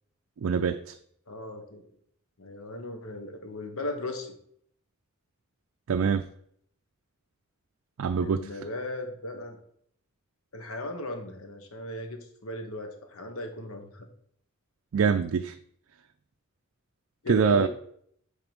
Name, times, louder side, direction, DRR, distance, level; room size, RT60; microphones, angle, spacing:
voice 1, 0.4-1.0 5.9-6.3 8.0-8.5 14.9-15.6 17.3-17.7, right 6 dB, 75° right, 0.4 m, -24 dB
voice 2, 1.3-1.8 2.4-4.3 8.2-9.6 10.5-14.1 17.2-17.7, left 2 dB, 80° left, 1.3 m, -36 dB
9.3 x 3.9 x 5.3 m
head